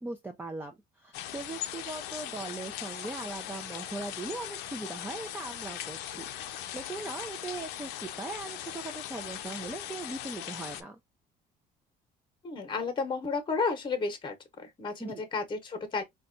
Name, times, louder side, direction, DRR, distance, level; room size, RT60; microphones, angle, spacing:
voice 1, 0.0-11.0 15.0-15.3, right 3 dB, 10° right, 0.4 m, -40 dB
sound 1, 1.1-10.8, left 12 dB, 90° left, 0.4 m, -39 dB
voice 2, 12.4-16.0, left 4 dB, 30° left, 0.9 m, -32 dB
3.9 x 2.2 x 2.5 m
cardioid pair, 110°, 17 cm